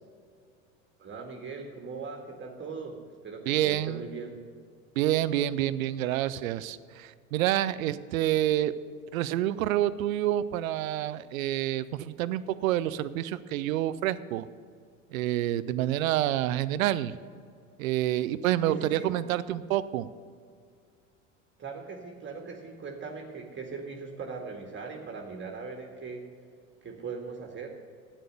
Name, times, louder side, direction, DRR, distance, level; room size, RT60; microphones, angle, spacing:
voice 1, 1.0-4.4 18.6-19.2 21.6-26.3 26.8-27.7, right 4 dB, 25° right, 2 dB, 2.0 m, -40 dB
voice 2, 3.5-4.1 5.0-8.7 9.1-14.5 15.1-17.2 17.8-20.1, right 13 dB, 75° right, 15 dB, 0.7 m, -28 dB
11.5 x 9.1 x 6.7 m, 2.2 s
hypercardioid pair, 80°, 41 cm